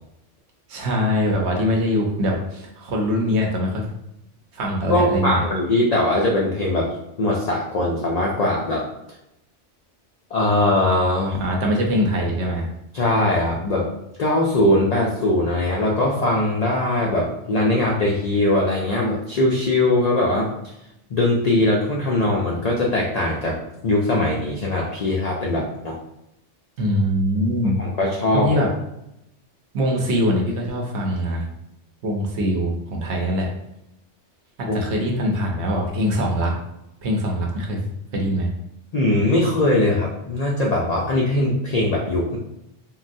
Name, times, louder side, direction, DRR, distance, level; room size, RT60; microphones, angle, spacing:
voice 1, 0.7-3.9 4.5-5.4 11.4-12.7 26.8-27.8 28.3-28.7 29.7-31.4 32.0-33.5 34.6-36.5 37.0-37.8 38.1-38.5, equal, 70° right, 0 dB, 0.9 m, -22 dB
voice 2, 4.9-8.9 10.3-11.4 12.9-13.9 14.2-20.5 21.1-26.0 27.8-28.7 34.7-34.8 38.9-42.4, left 1 dB, 70° left, -2 dB, 0.3 m, -21 dB
3.8 x 2.1 x 2.5 m, 0.86 s
omnidirectional pair, 1.2 m